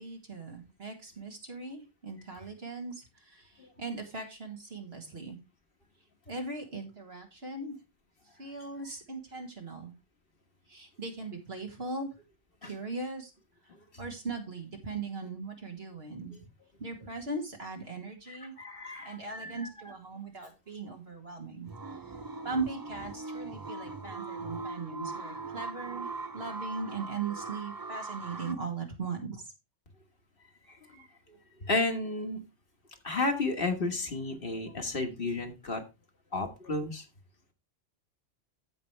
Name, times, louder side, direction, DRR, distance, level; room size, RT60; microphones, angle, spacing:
voice 1, 0.0-5.4 6.3-7.8 8.4-9.9 10.7-12.1 12.6-13.3 14.0-16.4 16.8-18.5 19.0-21.7 22.4-29.5, right 3 dB, 55° right, 3 dB, 2.0 m, -39 dB
voice 2, 18.3-19.9 30.7-31.1 31.6-32.4 33.0-35.8 36.3-37.1, left 2 dB, 50° left, 4 dB, 1.6 m, -33 dB
sound 1, 21.7-28.5, right 3 dB, 30° right, 0.4 m, -40 dB
15.0 x 5.2 x 3.2 m, 0.26 s
omnidirectional pair, 1.3 m